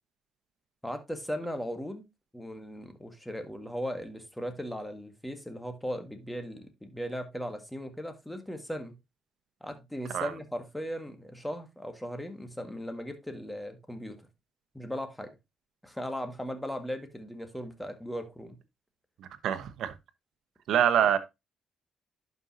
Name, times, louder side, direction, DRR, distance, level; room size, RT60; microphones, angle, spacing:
voice 1, 0.8-2.0 2.3-8.9 9.6-14.2 14.7-15.3 15.8-18.6 21.0-21.1, equal, 5° left, 1.8 m, -37 dB
voice 2, 19.2-19.9 20.7-21.2, right 9 dB, 75° right, 1.1 m, -25 dB
11.5 x 5.4 x 2.7 m
cardioid pair, 90°, 0 cm